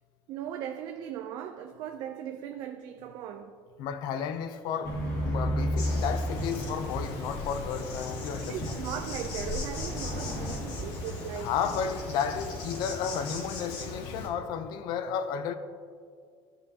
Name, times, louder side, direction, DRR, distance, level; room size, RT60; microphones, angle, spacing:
voice 1, 0.3-3.5 8.4-11.5, right 9 dB, 50° right, 0.4 m, -38 dB
voice 2, 3.8-8.8 11.3-15.5, left 7 dB, 50° left, 0.5 m, -33 dB
sound 1, 4.8-10.6, equal, 35° left, 1.9 m, -33 dB
Insect, 5.8-14.3, left 2 dB, 70° left, 1.8 m, -38 dB
13.5 x 5.6 x 2.7 m
cardioid pair, 180°, 9 cm